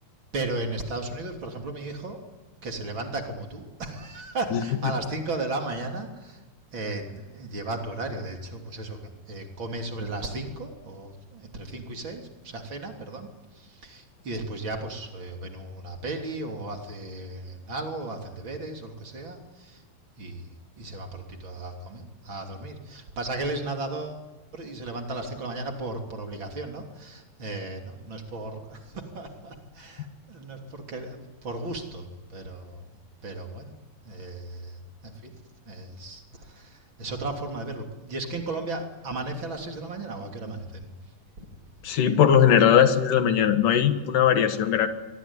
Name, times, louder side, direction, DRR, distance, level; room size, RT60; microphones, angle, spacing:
voice 1, 0.3-2.2 2.6-6.4 6.7-13.3 13.5-19.8 20.2-20.5 20.8-24.2 24.5-32.9 33.2-33.7 34.0-35.3 35.7-40.9 41.4-41.5, right 2 dB, 30° right, 3 dB, 3.5 m, -35 dB
voice 2, 4.5-4.9 41.8-44.9, left 9 dB, 60° left, 8 dB, 3.1 m, -20 dB
24.5 x 23.5 x 9.9 m, 1.2 s
omnidirectional pair, 4.5 m